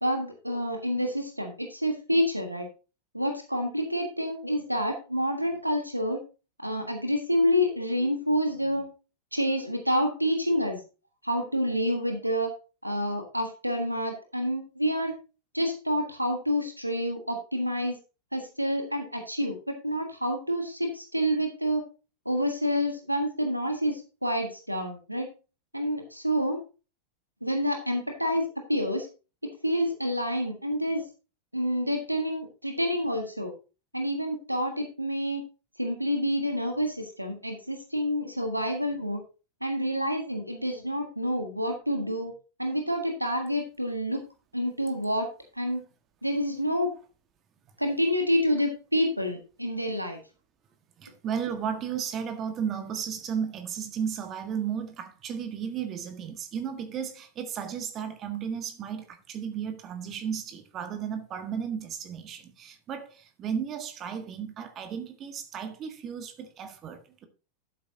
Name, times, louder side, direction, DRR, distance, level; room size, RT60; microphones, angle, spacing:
voice 1, 0.0-2.7 3.1-6.2 6.6-8.9 9.3-10.8 11.2-12.5 12.8-15.1 15.5-17.9 18.3-21.8 22.2-25.3 25.7-26.6 27.4-29.1 29.4-31.0 31.5-33.5 33.9-35.4 35.8-39.2 39.6-42.3 42.6-44.2 44.5-45.3 45.5-45.8 46.2-46.9 47.8-50.2, equal, 90° right, 1.4 m, -28 dB
voice 2, 51.0-67.3, right 7 dB, 30° right, 1.5 m, -34 dB
11.5 x 8.4 x 2.7 m
figure-of-eight pair, 90°, 0 cm